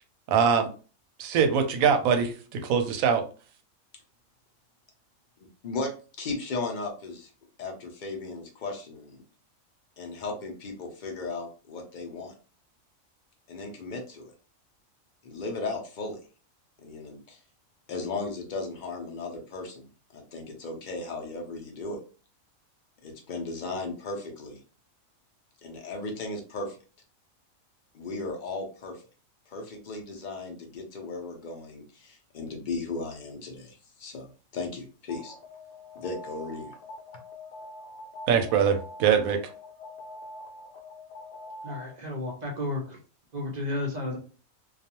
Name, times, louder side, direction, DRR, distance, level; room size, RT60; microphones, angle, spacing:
voice 1, 0.3-0.7 1.2-3.2 38.3-39.4, right 7 dB, 90° right, 1.0 m, -23 dB
voice 2, 5.4-5.9 6.2-7.3 7.6-9.2 10.0-12.3 13.5-14.3 15.2-16.2 16.8-17.4 17.9-22.0 23.0-24.6 25.6-26.8 27.9-29.0 29.5-35.3 35.9-36.7, left 3 dB, 55° left, 0.5 m, -36 dB
Alarm, 35.1-42.2, left 2 dB, 70° left, 0.9 m, -44 dB
voice 3, 41.6-43.0 43.3-44.2, left 2 dB, 55° right, 0.5 m, -32 dB
2.3 x 2.3 x 2.8 m
omnidirectional pair, 1.4 m